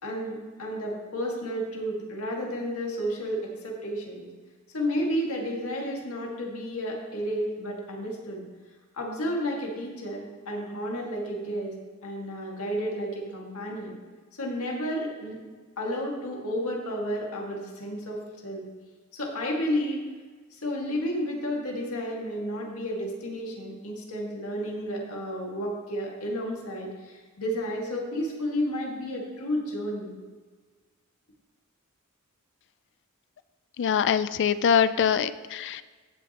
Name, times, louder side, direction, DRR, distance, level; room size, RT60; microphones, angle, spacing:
voice 1, 0.0-4.2 4.7-8.4 8.9-11.7 12.0-13.9 14.4-15.4 15.8-18.6 19.1-20.0 20.6-30.1, equal, 70° left, -1 dB, 2.0 m, -32 dB
voice 2, 33.8-35.8, left 7 dB, 55° left, 14 dB, 0.4 m, -23 dB
15.5 x 6.3 x 3.0 m, 1.4 s
head